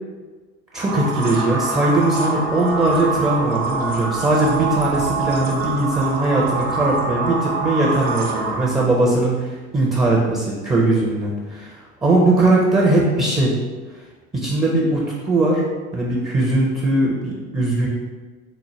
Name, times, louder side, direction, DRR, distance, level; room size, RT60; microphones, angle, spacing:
voice 1, 0.7-13.6 14.3-15.6 15.9-17.9, right 2 dB, 10° right, -3 dB, 0.5 m, -19 dB
sound 1, 0.7-8.8, right 3 dB, 75° right, 0.8 m, -25 dB
4.2 x 2.1 x 3.1 m, 1.3 s
hypercardioid pair, 80°, 41 cm